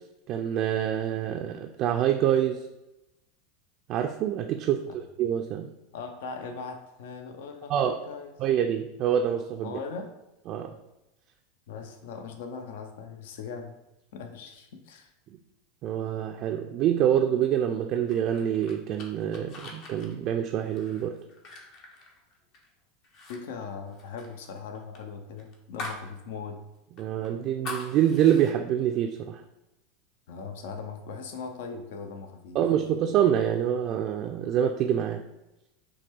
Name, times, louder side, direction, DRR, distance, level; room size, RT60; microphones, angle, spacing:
voice 1, 0.3-2.6 3.9-5.7 7.7-7.9 8.4-9.7 10.5-10.7 15.8-21.2 27.0-29.4 32.5-35.3, right 10 dB, 50° right, 3 dB, 0.3 m, -26 dB
voice 2, 5.9-8.3 9.6-10.1 11.7-13.8 14.1-15.1 23.3-26.6 30.3-32.6, left 5 dB, 70° left, 6 dB, 0.5 m, -39 dB
sound 1, 18.1-22.7 23.0-23.4 23.6-26.1 26.4-26.5 27.0-28.5, left 2 dB, 50° left, 0.9 m, -42 dB
5.8 x 2.3 x 3.3 m, 0.94 s
hypercardioid pair, 90°, 0 cm